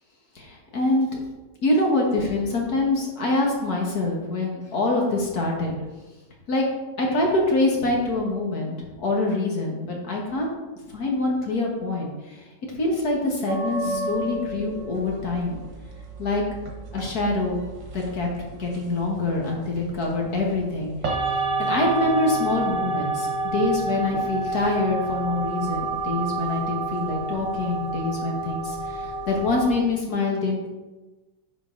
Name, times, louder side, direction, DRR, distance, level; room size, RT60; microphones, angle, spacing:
voice 1, 0.4-1.1 1.6-5.7 6.5-6.7 7.0-10.5 10.9-12.5 12.8-15.6 16.2-16.4 16.9-17.6 17.9-18.3 18.6-21.2 21.6-30.8, left 2 dB, 60° left, -1 dB, 1.9 m, -25 dB
sound 1, 13.5-29.8, right 3 dB, 90° right, 2.1 m, -30 dB
9.7 x 5.5 x 3.8 m, 1.2 s
omnidirectional pair, 1.9 m